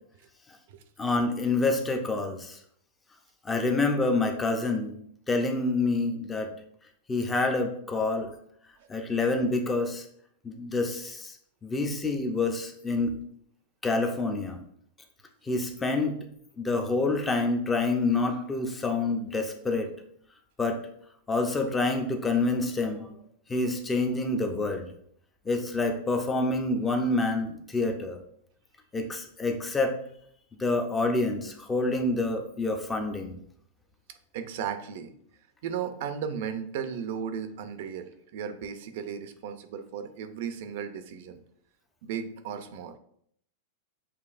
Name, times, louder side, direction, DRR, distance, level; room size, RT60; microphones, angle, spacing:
voice 1, 1.0-2.6 3.5-4.9 5.3-6.5 7.1-8.3 8.9-10.0 10.4-11.3 11.6-13.2 13.8-14.6 15.5-16.2 16.6-19.9 20.6-20.8 21.3-23.1 23.5-24.9 25.5-28.2 28.9-29.9 30.6-33.3, left 3 dB, 10° left, 4 dB, 0.6 m, -27 dB
voice 2, 34.3-35.1 35.6-41.4 42.0-43.0, right 7 dB, 60° right, 9 dB, 0.5 m, -35 dB
6.9 x 2.7 x 2.5 m, 0.68 s
supercardioid pair, 150°, 0 cm